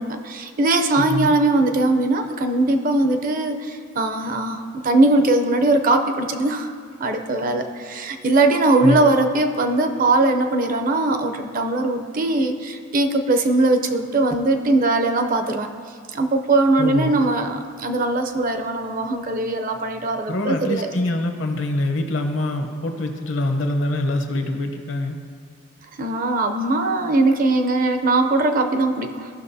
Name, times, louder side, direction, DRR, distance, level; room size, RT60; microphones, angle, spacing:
voice 1, 0.0-6.7 7.0-15.7 16.1-20.9 26.0-29.3, right 2 dB, 45° right, 6 dB, 0.6 m, -20 dB
voice 2, 1.0-1.3 8.8-9.0 16.8-17.1 20.3-25.2, left 1 dB, 70° left, 5 dB, 0.9 m, -24 dB
15.5 x 6.1 x 2.7 m, 2.1 s
head